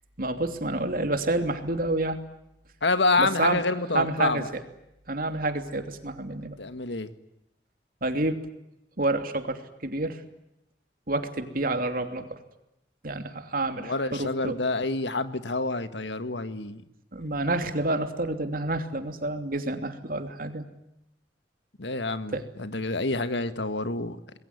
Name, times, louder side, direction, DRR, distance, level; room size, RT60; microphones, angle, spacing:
voice 1, 0.2-2.2 3.2-3.6 3.9-4.5 5.1-6.6 8.0-8.4 9.0-10.2 11.1-12.4 13.0-14.6 17.1-20.6 22.3-22.4, right 2 dB, 50° right, 7 dB, 2.9 m, -28 dB
voice 2, 2.8-4.5 6.6-7.1 13.8-16.8 21.8-24.2, left 3 dB, 80° left, 11 dB, 1.8 m, -27 dB
27.0 x 21.5 x 9.8 m, 0.86 s
head